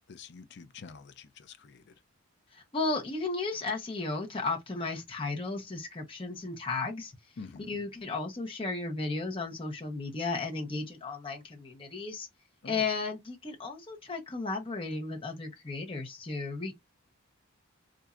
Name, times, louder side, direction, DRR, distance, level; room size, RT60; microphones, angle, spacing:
voice 1, 0.1-1.9 7.4-7.8 12.6-12.9, left 4 dB, 50° left, 0.5 m, -47 dB
voice 2, 2.5-7.1 7.7-12.3 12.6-16.8, left 3 dB, 25° left, 0.9 m, -34 dB
4.2 x 2.6 x 2.4 m
head